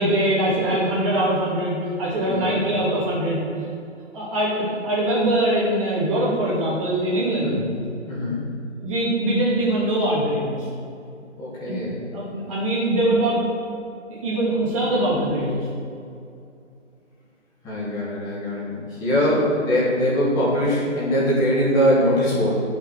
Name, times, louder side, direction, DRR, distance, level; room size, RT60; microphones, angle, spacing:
voice 1, 0.0-3.4 4.1-7.6 8.8-10.6 11.6-11.8 12.1-13.4 14.2-15.7 19.3-19.4, right 1 dB, 25° right, -7 dB, 2.6 m, -22 dB
voice 2, 2.3-2.6 7.4-7.7 8.1-8.4 11.4-11.9 17.6-22.6, equal, 10° left, -7 dB, 1.8 m, -22 dB
11.5 x 6.0 x 6.3 m, 2.4 s
figure-of-eight pair, 145°, 38 cm